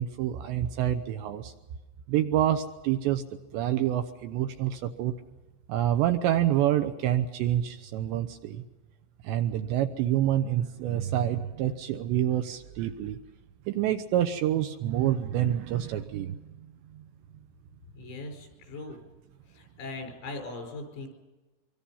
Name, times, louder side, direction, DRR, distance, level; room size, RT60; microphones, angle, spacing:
voice 1, 0.0-1.5 2.1-3.2 3.5-5.1 5.7-8.6 9.2-13.2 13.7-16.4 16.9-17.0, right 12 dB, 80° right, 7 dB, 2.7 m, -27 dB
voice 2, 18.0-19.0 19.6-21.1, left 3 dB, 85° left, 3 dB, 7.5 m, -39 dB
25.0 x 24.0 x 5.6 m, 1.2 s
omnidirectional pair, 5.9 m